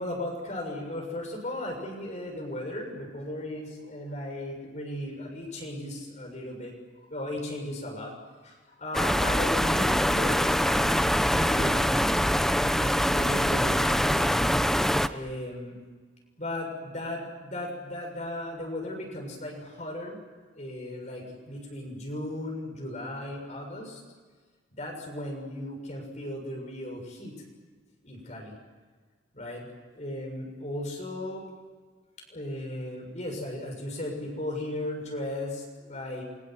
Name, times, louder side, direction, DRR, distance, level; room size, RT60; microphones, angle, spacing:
voice 1, 0.0-6.7 7.1-8.1 8.4-11.0 11.3-11.9 12.3-14.3 15.1-15.7 16.4-20.2 20.5-24.0 24.8-27.4 28.0-28.5 29.3-29.7 29.9-31.4 32.3-36.2, left 1 dB, 40° left, 1 dB, 7.0 m, -36 dB
sound 1, 8.9-15.1, equal, ahead, 0.8 m, -24 dB
29.5 x 24.5 x 8.0 m, 1.5 s
head